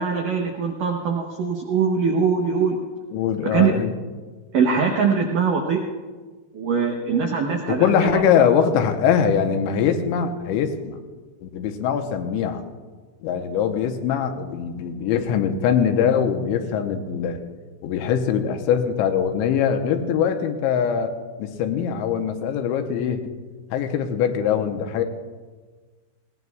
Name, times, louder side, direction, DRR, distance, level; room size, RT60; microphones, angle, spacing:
voice 1, 0.0-2.8 3.5-3.7 4.5-5.8 6.5-8.2, right 5 dB, 80° right, 1 dB, 1.9 m, -22 dB
voice 2, 3.1-3.9 7.7-11.0 11.4-12.6 13.2-17.4 17.8-21.1 21.4-23.2 23.7-25.0, left 7 dB, 80° left, 6 dB, 3.1 m, -22 dB
20.5 x 18.0 x 2.3 m, 1.4 s
omnidirectional pair, 5.4 m